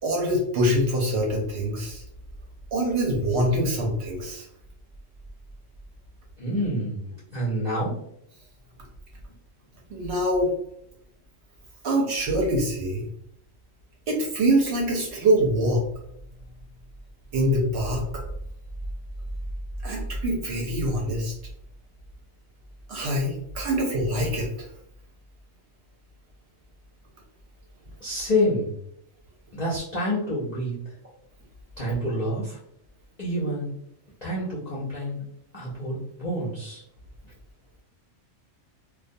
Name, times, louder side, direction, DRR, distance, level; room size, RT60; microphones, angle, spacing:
voice 1, 0.0-2.0 2.7-4.5 9.9-10.5 11.8-13.1 14.1-15.8 17.3-18.2 19.8-21.3 22.9-24.7, right 1 dB, 65° right, -1 dB, 0.8 m, -24 dB
voice 2, 6.4-7.0 7.3-8.0 28.0-28.7 29.5-30.7 31.8-32.6 33.2-33.8 34.2-35.2 35.5-36.8, equal, 50° left, -8 dB, 0.5 m, -27 dB
2.3 x 2.2 x 2.5 m, 0.73 s
omnidirectional pair, 1.4 m